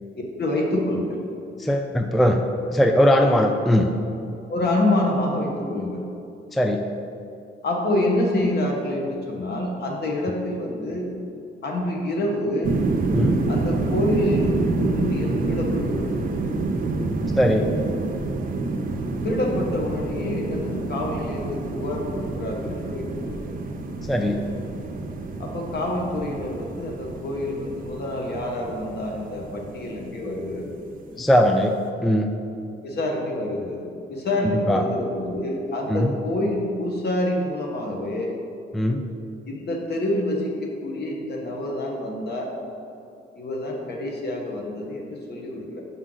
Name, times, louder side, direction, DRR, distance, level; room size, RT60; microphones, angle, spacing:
voice 1, 0.4-1.2 4.5-6.1 7.6-11.1 11.6-12.7 13.5-16.3 19.2-23.5 25.4-30.7 32.8-38.4 39.5-42.5 43.4-45.8, left 1 dB, 55° left, 0 dB, 1.3 m, -27 dB
voice 2, 1.6-2.4 2.7-3.9 6.5-6.9 13.1-13.4 17.4-17.7 24.1-24.4 31.2-31.8 32.0-32.3 34.4-34.8 35.9-36.1 38.7-39.0, equal, ahead, 4 dB, 0.3 m, -20 dB
sound 1, 12.6-31.5, right 3 dB, 45° right, 0.7 m, -28 dB
6.2 x 5.5 x 3.9 m, 2.6 s
cardioid pair, 90°, 20 cm